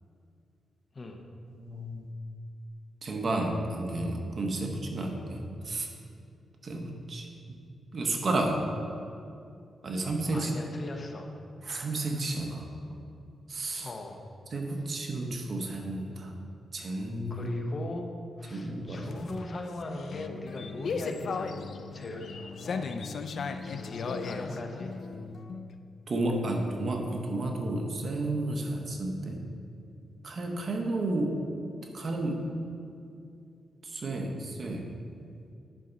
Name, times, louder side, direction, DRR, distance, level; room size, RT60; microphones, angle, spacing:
voice 1, 1.5-2.1 3.0-5.9 6.6-7.6 7.9-8.6 9.8-10.5 11.6-13.0 13.5-13.9 14.5-16.3 16.7-17.5 18.5-19.2 26.1-29.4 30.2-31.4 31.9-32.5 33.8-34.9, right 2 dB, 50° right, 2 dB, 1.1 m, -32 dB
voice 2, 10.3-11.3 13.8-14.2 17.3-18.1 18.4-23.2 23.6-24.9, left 2 dB, 40° left, 3 dB, 0.9 m, -39 dB
sound 1, 18.9-25.7, left 5 dB, 65° left, 0.4 m, -37 dB
10.5 x 5.8 x 4.0 m, 2.5 s
cardioid pair, 95°, 0 cm